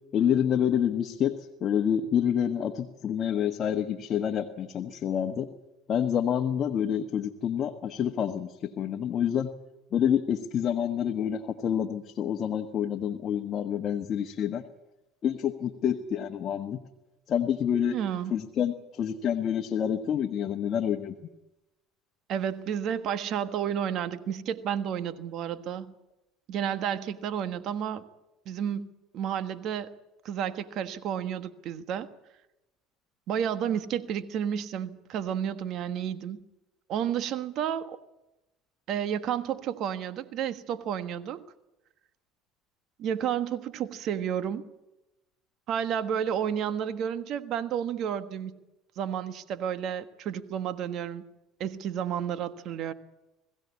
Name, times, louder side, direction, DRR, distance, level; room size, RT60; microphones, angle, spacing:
voice 1, 0.1-1.3 1.6-5.5 5.9-9.5 9.9-14.6 15.2-16.8 17.3-18.0 18.3-21.1, left 9 dB, 45° left, 3 dB, 1.3 m, -28 dB
voice 2, 17.9-18.3 22.3-25.9 26.5-28.1 28.4-29.9 30.2-32.1 33.3-36.4 36.9-38.0 38.9-41.4 43.0-44.7 45.7-48.6 49.0-51.3 51.6-52.9, right 9 dB, 55° right, 11 dB, 1.4 m, -31 dB
21.0 x 16.0 x 8.4 m, 0.96 s
supercardioid pair, 100°, 0 cm